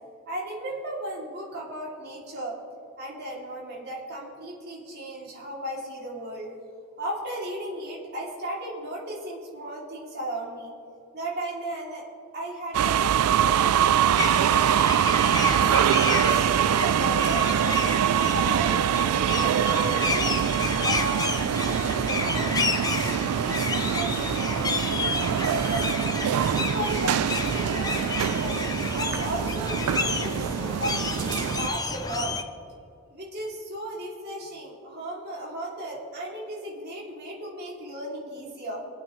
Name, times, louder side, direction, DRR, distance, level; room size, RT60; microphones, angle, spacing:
voice 1, 0.3-2.6 3.0-6.5 7.0-10.7 11.1-12.0 12.3-14.7 15.4-18.8 19.3-20.3 20.8-25.9 26.5-28.6 28.9-32.3 33.1-38.8, right 1 dB, 45° right, -4 dB, 2.8 m, -35 dB
sound 1, 12.7-31.7, right 9 dB, 85° right, 0.3 m, -24 dB
sound 2, 14.2-32.4, left 3 dB, 15° left, 0.6 m, -31 dB
22.5 x 8.8 x 3.1 m, 2.4 s
head